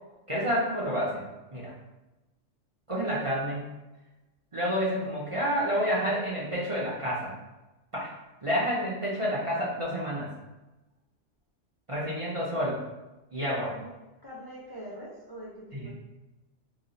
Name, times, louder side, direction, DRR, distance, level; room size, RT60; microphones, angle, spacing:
voice 1, 0.3-1.2 1.5-1.7 2.9-3.7 4.5-7.4 7.9-8.1 8.4-10.3 11.9-12.8 13.3-13.7 15.7-15.9, equal, 35° right, -6 dB, 0.6 m, -29 dB
voice 2, 14.2-15.9, equal, 25° left, -6 dB, 0.5 m, -44 dB
2.9 x 2.4 x 3.9 m, 1.0 s
omnidirectional pair, 1.3 m